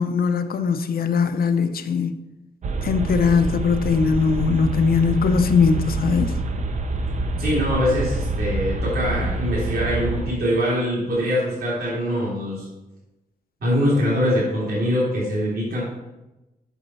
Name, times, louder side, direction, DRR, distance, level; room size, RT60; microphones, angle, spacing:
voice 1, 0.0-2.2 2.8-6.4, left 5 dB, 65° left, 10 dB, 0.7 m, -20 dB
sound 1, 2.6-10.4, right 2 dB, 45° right, 0.7 m, -26 dB
voice 2, 7.4-12.7 13.6-15.8, equal, 65° right, -7 dB, 3.4 m, -23 dB
8.1 x 6.5 x 4.3 m, 1.0 s
wide cardioid pair, 155°, 16 cm